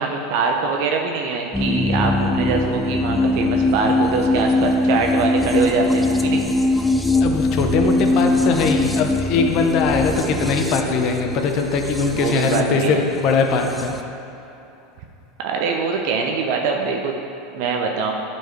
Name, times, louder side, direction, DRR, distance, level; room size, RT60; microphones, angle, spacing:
voice 1, 0.0-6.5 12.1-13.0 15.4-17.2 17.5-18.1, right 4 dB, 65° right, 2 dB, 0.7 m, -23 dB
sound 1, 1.5-14.0, left 2 dB, 5° left, 0.5 m, -21 dB
voice 2, 7.2-13.9, left 4 dB, 55° left, 4 dB, 0.8 m, -21 dB
9.2 x 4.5 x 4.6 m, 2.9 s
hypercardioid pair, 105°, 0 cm